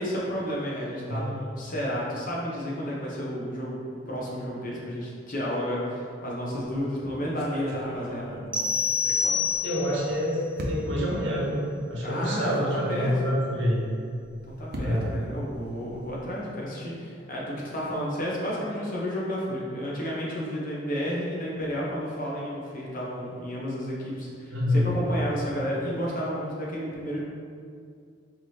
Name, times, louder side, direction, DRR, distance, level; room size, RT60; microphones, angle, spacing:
voice 1, 0.0-8.3 12.0-13.1 14.5-27.2, equal, 45° left, -5 dB, 0.9 m, -31 dB
sound 1, 6.5-6.8 7.4-10.1 10.6-11.1 11.9-12.0 12.3-12.4 14.0-16.3, equal, 55° right, 0.6 m, -39 dB
sound 2, 8.5-10.0, left 5 dB, 5° right, 0.3 m, -26 dB
voice 2, 9.6-13.8 14.8-15.1 24.5-24.9, equal, 75° right, -4 dB, 0.9 m, -27 dB
4.5 x 2.8 x 3.3 m, 2.2 s
head